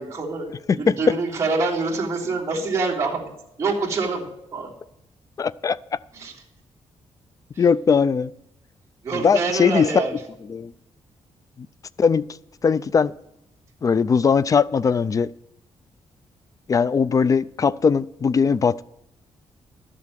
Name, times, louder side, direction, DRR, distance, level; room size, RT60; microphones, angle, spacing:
voice 1, 0.0-3.3 3.6-4.7 6.1-6.3 7.5-7.6 9.0-10.2, right 3 dB, 25° right, 3.2 m, -26 dB
voice 2, 0.7-1.1 5.4-5.8 7.6-8.3 9.2-9.9 10.5-10.7 12.0-12.2 12.6-13.1 13.8-15.3 16.7-18.8, left 6 dB, 30° left, 0.3 m, -19 dB
12.0 x 7.5 x 7.5 m
cardioid pair, 125°, 11 cm